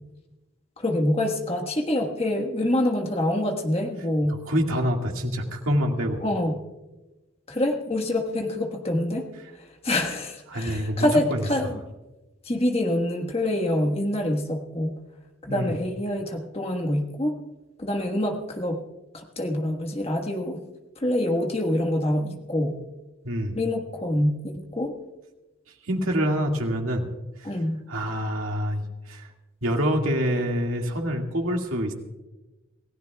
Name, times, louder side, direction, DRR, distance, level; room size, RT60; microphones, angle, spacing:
voice 1, 0.8-4.4 6.2-6.6 7.5-9.2 9.6-11.7 12.4-14.9 15.4-17.3 17.8-18.8 19.1-20.6 21.0-22.8 23.5-24.9 27.4-27.8, left 1 dB, 30° left, 3 dB, 1.5 m, -26 dB
voice 2, 4.3-6.2 10.5-11.7 15.5-15.7 23.2-23.6 25.9-27.1 27.9-29.3 29.6-31.9, equal, 85° right, 1 dB, 2.1 m, -26 dB
28.0 x 16.0 x 2.3 m, 1.1 s
head